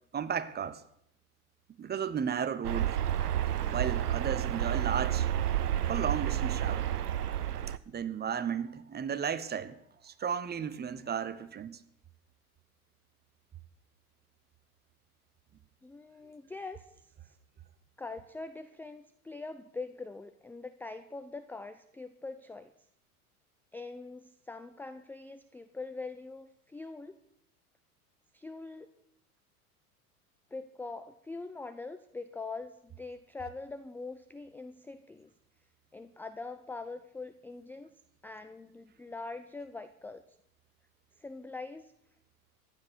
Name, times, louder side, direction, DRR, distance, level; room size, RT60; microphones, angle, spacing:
voice 1, 0.1-0.8 1.8-3.0 3.7-5.3 5.9-6.9 7.9-9.8 10.0-11.8, right 7 dB, 20° right, 1.2 m, -34 dB
sound 1, 2.6-7.8, right 11 dB, 90° right, 0.6 m, -30 dB
voice 2, 15.8-16.8 18.0-22.7 23.7-27.2 28.3-28.9 30.5-35.3 35.9-37.9 38.2-40.2 41.2-41.9, left 3 dB, 5° left, 0.5 m, -43 dB
15.0 x 10.5 x 6.2 m
hypercardioid pair, 85°, 45 cm